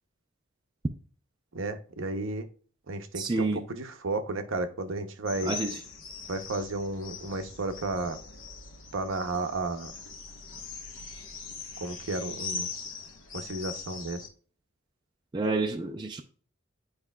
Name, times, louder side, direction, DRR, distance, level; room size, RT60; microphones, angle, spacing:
voice 1, 1.5-2.5 2.9-5.6 6.3-8.2 8.9-9.9 11.8-12.7 13.3-14.2, right 2 dB, 70° right, 0.7 m, -33 dB
voice 2, 3.2-3.7 5.4-5.8 15.3-16.2, right 3 dB, 20° right, 0.4 m, -29 dB
sound 1, 5.3-14.3, left 5 dB, 70° left, 1.0 m, -41 dB
9.6 x 4.8 x 2.2 m
head